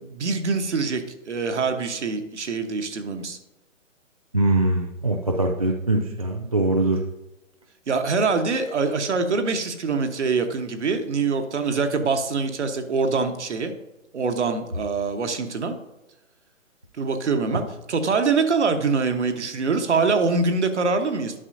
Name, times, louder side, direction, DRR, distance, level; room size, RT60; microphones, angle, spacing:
voice 1, 0.0-3.4 7.9-13.7 14.1-15.8 17.0-17.6 17.9-21.3, right 4 dB, 60° right, 7 dB, 1.1 m, -24 dB
voice 2, 4.3-7.0 17.5-17.6, right 2 dB, 30° right, 2 dB, 0.4 m, -22 dB
11.0 x 6.0 x 2.6 m, 0.98 s
figure-of-eight pair, 140°, 40 cm